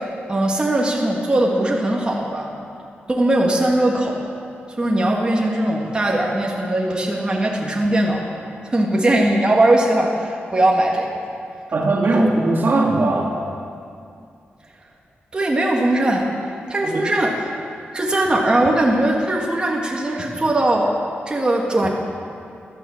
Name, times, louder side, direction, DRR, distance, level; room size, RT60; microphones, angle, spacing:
voice 1, 0.3-2.6 3.1-4.3 4.7-8.4 8.7-11.1 15.3-16.3 16.7-17.3 17.9-20.9 21.3-21.9, right 1 dB, 25° right, -1 dB, 1.8 m, -19 dB
voice 2, 11.7-13.5 16.8-17.1, right 2 dB, 55° right, 0 dB, 2.1 m, -19 dB
15.0 x 12.5 x 7.3 m, 2.4 s
wide cardioid pair, 130°, 4 cm